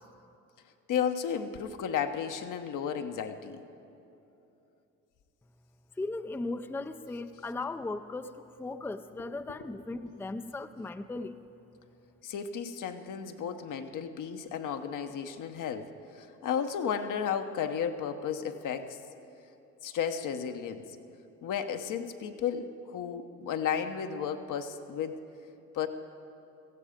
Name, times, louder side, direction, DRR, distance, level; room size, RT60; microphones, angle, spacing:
voice 1, 0.9-3.6 12.2-19.0 19.8-20.9 21.4-25.2 25.7-25.9, left 7 dB, 60° left, 7 dB, 1.0 m, -33 dB
voice 2, 6.0-11.4, left 2 dB, 5° left, 9 dB, 0.5 m, -37 dB
16.5 x 15.0 x 5.1 m, 2.8 s
hypercardioid pair, 60°, 35 cm